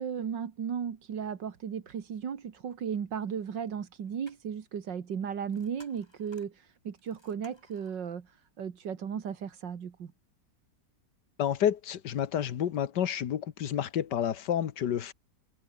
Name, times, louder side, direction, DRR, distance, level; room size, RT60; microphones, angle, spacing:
voice 1, 0.0-10.1, right 7 dB, 85° right, 2.4 m, -35 dB
sound 1, 3.9-8.0, left 1 dB, 15° left, 5.7 m, -61 dB
voice 2, 11.4-15.1, left 9 dB, 75° left, 1.8 m, -29 dB
omnidirectional pair, 1.9 m